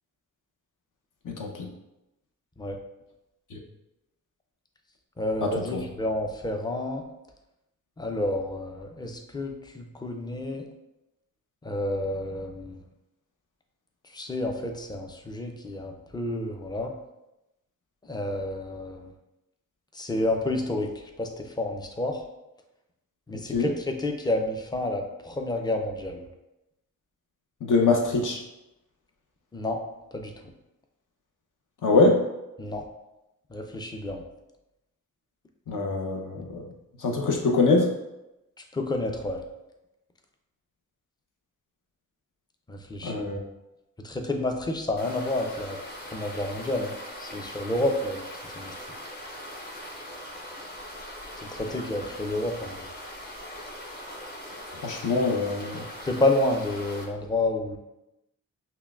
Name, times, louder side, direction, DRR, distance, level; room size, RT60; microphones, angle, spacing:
voice 1, 1.2-1.7 3.5-3.6 5.7-5.8 23.3-23.7 27.6-28.4 31.8-32.2 35.7-36.7 37.0-37.9 43.0-43.4 54.8-55.8, left 3 dB, 60° left, 1 dB, 0.8 m, -23 dB
voice 2, 5.2-7.0 8.0-10.6 11.6-12.8 14.1-16.9 18.1-19.1 19.9-20.9 21.2-22.2 23.3-26.2 29.5-29.8 30.1-30.3 32.6-32.8 33.5-34.2 38.7-39.4 42.7-43.1 44.0-45.8 46.1-48.3 48.5-48.7 51.5-52.7 56.0-57.8, left 1 dB, 10° left, 4 dB, 0.5 m, -29 dB
sound 1, 45.0-57.0, equal, 30° left, 0.9 m, -41 dB
5.6 x 2.2 x 2.4 m, 0.93 s
cardioid pair, 70°, 35 cm